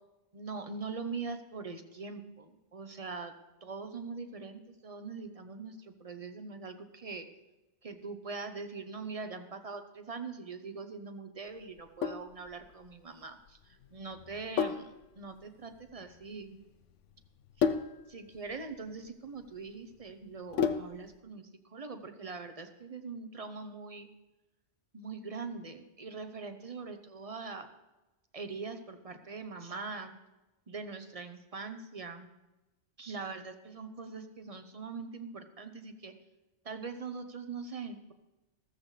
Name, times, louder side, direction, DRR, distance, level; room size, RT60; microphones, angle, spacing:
voice 1, 0.3-3.3 3.6-7.3 7.8-16.6 18.1-24.1 24.9-27.7 28.3-30.1 30.7-32.3 33.0-36.1 36.6-38.1, right 4 dB, 35° right, 8 dB, 0.8 m, -42 dB
Sink (filling or washing), 11.7-21.2, left 7 dB, 85° left, 1.0 m, -36 dB
14.0 x 14.0 x 3.3 m, 1.0 s
omnidirectional pair, 1.2 m